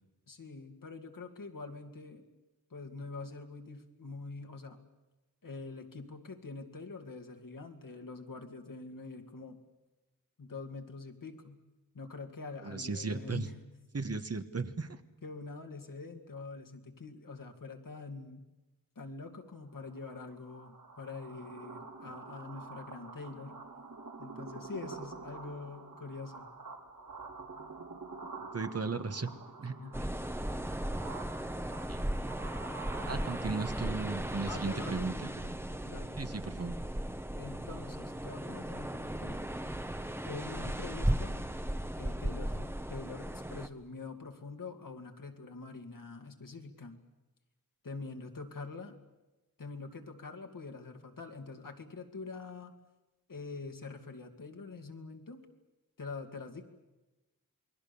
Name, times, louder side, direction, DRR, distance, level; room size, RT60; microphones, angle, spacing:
voice 1, 0.3-2.2 2.7-4.8 5.4-9.6 10.4-11.6 11.9-13.6 15.2-18.5 19.0-23.6 24.2-26.5 29.8-30.1 30.8-31.0 32.9-33.6 34.5-35.4 35.8-36.2 37.4-39.4 40.2-41.4 42.0-47.0 47.8-49.0 49.6-52.7 53.3-55.5 56.0-56.7, left 3 dB, 70° left, 4 dB, 2.4 m, -45 dB
voice 2, 12.6-13.5 13.9-15.0 28.5-29.3 29.6-29.7 30.0-30.1 31.9-32.1 33.1-35.1 35.4-35.5 36.2-36.7, right 4 dB, 45° right, 9 dB, 1.3 m, -36 dB
sound 1, 19.7-35.0, right 4 dB, 70° right, 3.5 m, -48 dB
sound 2, 29.9-43.7, right 1 dB, 5° right, 1.1 m, -36 dB
28.0 x 21.0 x 7.0 m, 1.1 s
wide cardioid pair, 75°, 34 cm